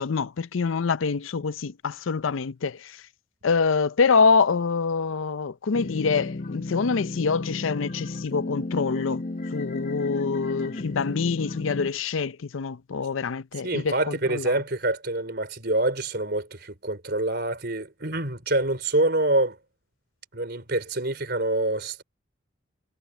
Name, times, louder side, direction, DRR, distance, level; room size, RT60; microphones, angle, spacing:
voice 1, 0.0-2.9 3.4-9.2 9.5-14.5, left 5 dB, 85° left, 0.5 m, -25 dB
sound 1, 5.7-11.9, left 2 dB, 45° left, 0.9 m, -33 dB
voice 2, 13.6-19.6 20.3-22.0, right 2 dB, 55° right, 4.3 m, -26 dB
head